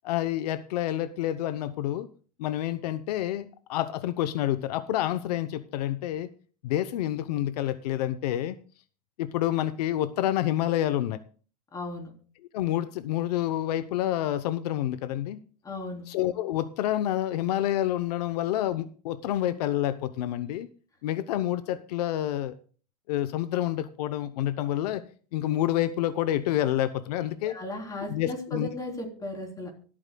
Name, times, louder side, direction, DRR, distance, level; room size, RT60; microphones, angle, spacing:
voice 1, 0.0-2.1 2.4-6.3 6.6-8.6 9.2-11.2 12.5-15.4 16.1-20.7 21.0-22.6 23.1-25.0 25.3-27.6 28.1-28.7, left 13 dB, 80° left, 13 dB, 0.8 m, -28 dB
voice 2, 11.7-12.1 15.6-16.1 27.4-29.7, left 1 dB, 15° left, 1 dB, 3.5 m, -36 dB
24.5 x 8.8 x 2.3 m, 0.41 s
supercardioid pair, 140°, 20 cm